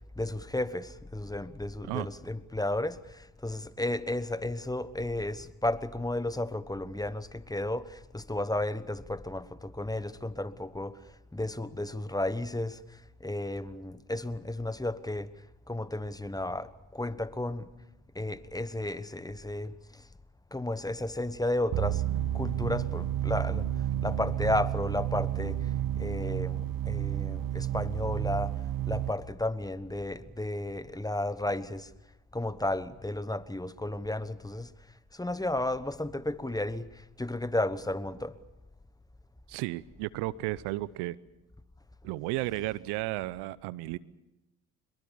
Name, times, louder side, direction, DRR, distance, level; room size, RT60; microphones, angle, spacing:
voice 1, 0.2-11.0 11.3-12.8 13.2-15.3 15.7-17.7 18.1-19.8 20.5-22.0 22.3-23.7 24.0-25.6 26.0-28.5 28.9-31.9 32.3-34.7 35.1-36.9 37.2-38.4, left 1 dB, 10° left, 1.2 m, -33 dB
sound 1, 21.7-29.1, right 12 dB, 55° right, 1.3 m, -31 dB
voice 2, 39.5-41.2 42.0-44.0, right 18 dB, 75° right, 0.8 m, -33 dB
25.0 x 22.0 x 7.1 m
hypercardioid pair, 55°, 41 cm